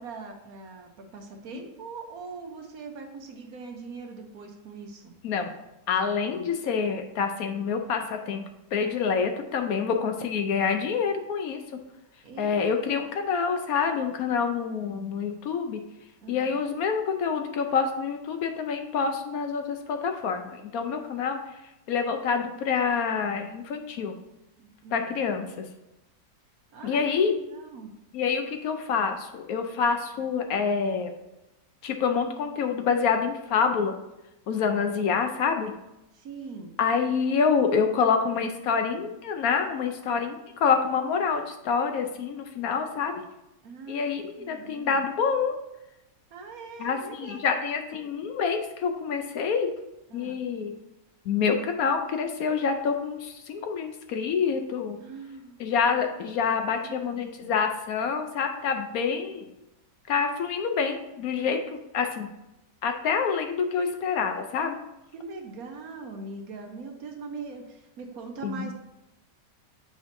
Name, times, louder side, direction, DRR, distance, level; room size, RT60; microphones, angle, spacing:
voice 1, 0.0-5.1 12.2-13.0 16.2-16.5 24.6-25.1 26.7-27.9 36.1-36.7 43.6-44.1 44.4-45.0 46.3-47.4 47.9-48.1 50.1-50.4 55.0-55.6 56.5-57.5 61.4-61.6 65.1-68.7, right 4 dB, 65° right, 3 dB, 1.2 m, -42 dB
voice 2, 5.9-8.4 8.7-11.6 12.4-15.8 16.3-21.5 21.9-24.2 24.9-25.7 26.8-27.4 28.1-31.1 31.8-34.0 34.5-35.7 36.8-43.1 43.9-45.6 46.8-49.7 50.1-50.8 51.3-55.0 55.6-59.5 60.1-62.3 62.8-64.8 68.4-68.7, left 6 dB, 70° left, 6 dB, 0.9 m, -27 dB
8.7 x 5.1 x 2.6 m, 0.92 s
omnidirectional pair, 1.8 m